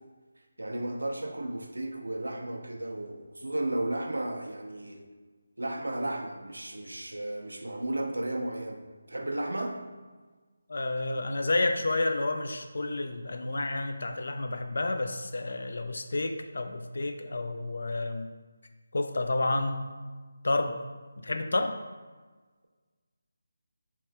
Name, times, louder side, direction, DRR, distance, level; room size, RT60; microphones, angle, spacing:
voice 1, 0.6-5.0 5.6-9.8, right 1 dB, 85° right, 4 dB, 0.5 m, -34 dB
voice 2, 10.7-18.3 18.9-19.9 20.4-20.8 21.2-21.8, left 2 dB, 65° left, 6 dB, 0.3 m, -30 dB
3.3 x 2.8 x 3.2 m, 1.4 s
figure-of-eight pair, 160°, 0 cm